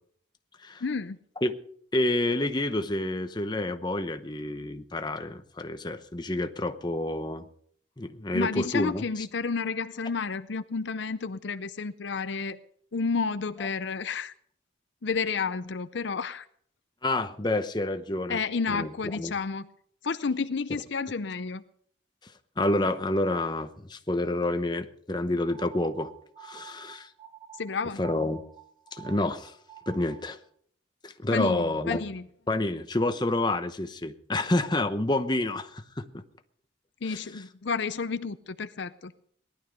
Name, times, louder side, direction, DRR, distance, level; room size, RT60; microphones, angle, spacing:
voice 1, 0.8-1.2 8.3-12.6 12.9-14.3 15.0-16.5 18.3-19.7 20.0-21.6 27.6-28.0 31.3-32.3 37.0-39.1, left 5 dB, 65° left, 12 dB, 0.6 m, -31 dB
voice 2, 1.9-7.4 8.0-9.0 17.0-18.4 18.7-19.3 22.2-22.3 22.6-26.1 26.4-27.1 28.0-28.4 28.9-29.5 29.9-30.4 31.0-32.0 32.5-36.2 37.1-37.2, left 1 dB, 20° left, 8 dB, 0.9 m, -28 dB
sound 1, 25.5-30.4, right 11 dB, 25° right, 2.0 m, -49 dB
19.0 x 11.5 x 5.2 m, 0.63 s
head